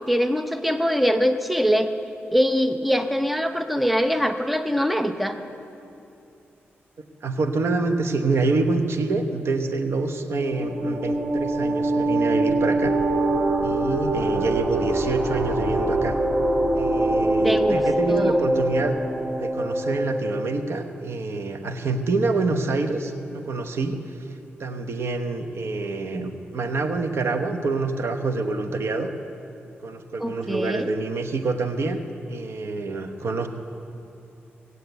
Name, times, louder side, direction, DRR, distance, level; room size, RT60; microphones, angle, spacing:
voice 1, 0.1-1.9 2.3-5.4 17.4-17.8 18.1-18.5 30.2-30.9, equal, ahead, 7 dB, 0.7 m, -23 dB
voice 2, 7.2-12.9 13.6-16.1 16.7-19.0 19.3-29.1 29.8-32.0 32.3-33.5, right 3 dB, 70° right, 7 dB, 1.0 m, -26 dB
sound 1, 10.4-20.6, right 1 dB, 25° right, 1.2 m, -24 dB
18.0 x 8.2 x 8.1 m, 2.7 s
cardioid pair, 90°, 4 cm